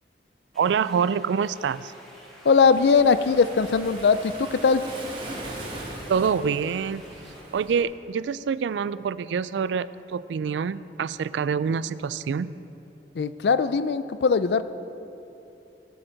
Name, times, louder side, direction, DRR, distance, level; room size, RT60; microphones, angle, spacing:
sound 1, 0.5-7.4, equal, ahead, 2.3 m, -50 dB
voice 1, 0.6-1.9 6.1-7.0 7.5-12.6, right 6 dB, 90° right, 17 dB, 0.3 m, -26 dB
voice 2, 2.4-4.9 13.1-14.6, left 5 dB, 75° left, 13 dB, 0.4 m, -20 dB
Waves surf, 2.6-7.8, right 1 dB, 30° right, 1.7 m, -39 dB
18.0 x 7.7 x 3.9 m, 2.9 s
head